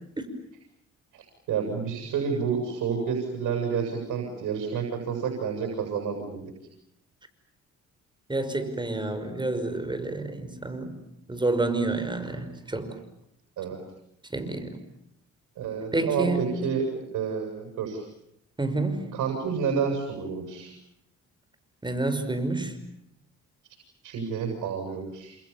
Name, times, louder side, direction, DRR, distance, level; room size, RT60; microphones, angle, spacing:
voice 1, 1.5-6.5 13.6-13.8 15.6-18.1 19.1-20.7 24.0-25.4, right 6 dB, 80° right, 3 dB, 7.9 m, -29 dB
voice 2, 8.3-11.0 11.3-13.0 14.3-14.8 15.9-16.6 18.6-19.1 21.8-22.8, right 2 dB, 15° right, 9 dB, 5.5 m, -29 dB
30.0 x 27.5 x 7.2 m, 0.75 s
cardioid pair, 90°, 30 cm